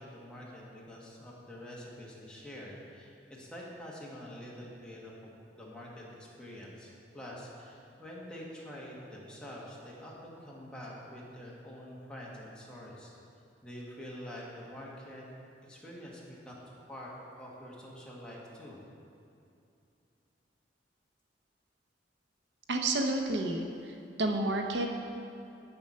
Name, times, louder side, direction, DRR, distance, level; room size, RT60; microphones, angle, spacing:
voice 1, 0.0-3.1 3.4-5.3 5.6-6.0 6.4-6.9 7.1-13.1 13.6-15.2 15.7-16.5 16.9-18.8, equal, 5° left, -5 dB, 1.5 m, -46 dB
voice 2, 22.7-23.6 24.2-24.9, right 2 dB, 80° right, 3 dB, 0.7 m, -29 dB
8.0 x 6.8 x 5.6 m, 2.6 s
head